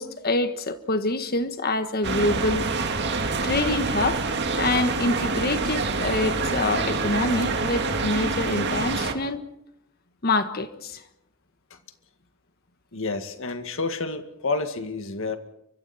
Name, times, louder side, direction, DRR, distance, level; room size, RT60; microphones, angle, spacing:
voice 1, 0.0-2.7 3.4-4.2 4.6-9.4 10.2-11.0, left 2 dB, 45° left, 9 dB, 1.6 m, -26 dB
sound 1, 2.0-9.1, right 3 dB, 55° right, 2.2 m, -26 dB
voice 2, 12.9-15.4, left 3 dB, 60° left, 8 dB, 2.0 m, -29 dB
30.0 x 24.5 x 4.4 m, 0.81 s
head